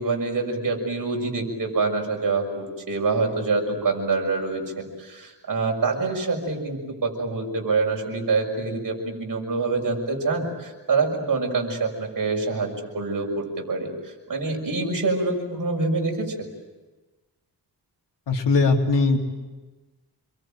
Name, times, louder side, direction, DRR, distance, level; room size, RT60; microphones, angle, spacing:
voice 1, 0.0-16.3, right 3 dB, 50° right, 2 dB, 6.4 m, -26 dB
voice 2, 18.3-19.2, left 3 dB, 80° left, 2 dB, 3.6 m, -20 dB
28.0 x 23.0 x 9.0 m, 1.2 s
wide cardioid pair, 120°, 41 cm